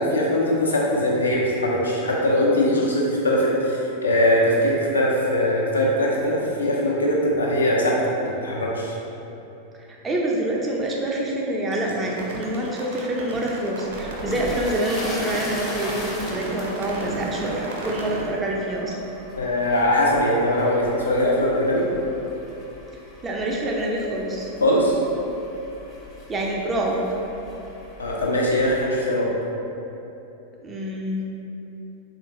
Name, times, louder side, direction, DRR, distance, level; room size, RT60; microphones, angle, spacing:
voice 1, 0.0-9.0 19.4-21.8 24.6-25.0 28.0-29.3, left 1 dB, 70° left, -3 dB, 0.5 m, -21 dB
voice 2, 9.9-19.0 23.2-24.5 26.3-27.0 30.6-31.3, right 1 dB, 20° right, -2 dB, 0.4 m, -26 dB
sound 1, 11.7-18.2, right 2 dB, 60° right, 0.6 m, -34 dB
sound 2, 13.8-28.8, left 1 dB, 20° left, 0.6 m, -40 dB
3.5 x 2.4 x 2.5 m, 2.9 s
figure-of-eight pair, 90°, 0 cm